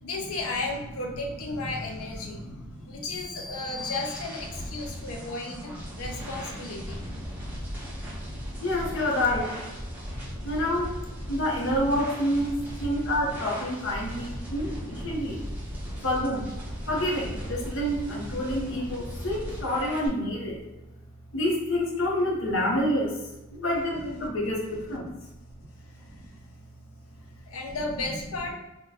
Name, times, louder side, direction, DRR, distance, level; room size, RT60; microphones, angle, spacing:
voice 1, 0.0-7.0 25.8-26.4 27.4-28.5, left 2 dB, 85° left, 2 dB, 0.6 m, -34 dB
voice 2, 2.3-3.2 6.2-6.3 6.6-7.1 8.6-9.6 10.4-11.0 11.3-15.4 16.0-16.5 16.9-20.6 21.3-23.2 23.5-25.1 26.1-26.3, left 1 dB, 65° left, -2 dB, 0.9 m, -28 dB
sound 1, 3.0-4.8, left 3 dB, 45° left, 0.5 m, -40 dB
sound 2, 3.1-20.1, equal, 10° right, 0.7 m, -38 dB
3.6 x 2.2 x 2.8 m, 1.0 s
head